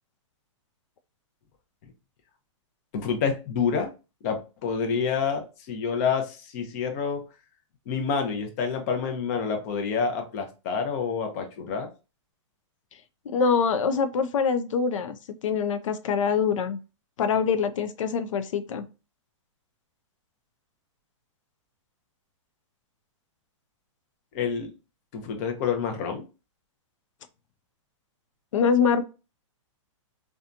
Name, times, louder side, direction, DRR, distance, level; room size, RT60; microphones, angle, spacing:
voice 1, 2.9-3.9 4.2-7.2 7.9-11.9 24.3-24.7 25.1-26.2, left 6 dB, 30° left, 0.5 m, -28 dB
voice 2, 13.3-15.2 15.4-16.8 17.2-18.8 28.5-29.0, left 6 dB, 90° left, 0.4 m, -24 dB
2.7 x 2.3 x 2.5 m
hypercardioid pair, 160°, 16 cm